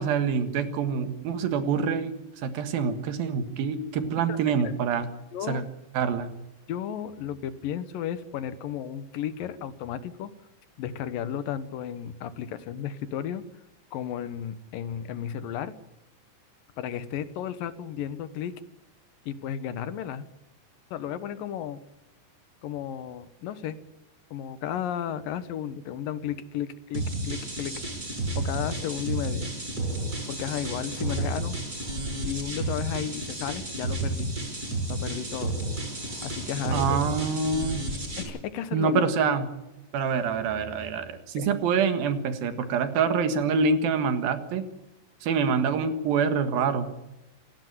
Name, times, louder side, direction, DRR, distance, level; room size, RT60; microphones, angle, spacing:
voice 1, 0.0-2.1 2.4-5.1 5.5-5.6 5.9-6.3 36.7-37.8 38.7-39.5 39.9-44.6 45.2-46.9, right 5 dB, 90° right, 9 dB, 3.5 m, -26 dB
voice 2, 5.3-5.6 6.7-10.3 10.8-13.4 13.9-15.7 16.8-18.5 19.3-20.3 20.9-21.8 22.6-23.8 24.3-27.7 28.4-29.5 30.3-31.6 32.2-34.3 34.9-35.5 36.2-37.0 38.2-39.1 41.4-41.5, left 9 dB, 75° left, 13 dB, 2.8 m, -33 dB
sound 1, 26.9-38.2, right 2 dB, 25° right, 7.4 m, -31 dB
27.5 x 12.0 x 9.5 m, 0.94 s
omnidirectional pair, 4.1 m